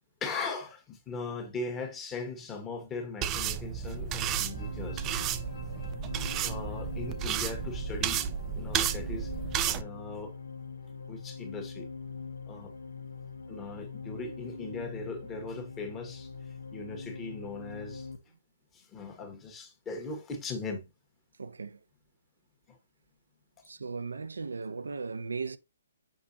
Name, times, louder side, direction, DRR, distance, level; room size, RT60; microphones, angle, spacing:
voice 1, 0.2-5.3 5.7-5.8 6.4-8.2 8.5-9.3 9.8-10.3 11.1-11.9 12.5-12.7 13.5-18.1 18.7-20.8 22.7-22.8, left 3 dB, 15° left, 1.4 m, -39 dB
sound 1, 3.2-9.8, right 9 dB, 20° right, 0.5 m, -32 dB
sound 2, 3.8-18.2, left 5 dB, 80° left, 1.4 m, -43 dB
voice 2, 21.4-21.8 23.7-25.6, right 4 dB, 85° right, 0.6 m, -37 dB
6.2 x 6.2 x 2.7 m
hypercardioid pair, 145°, 0 cm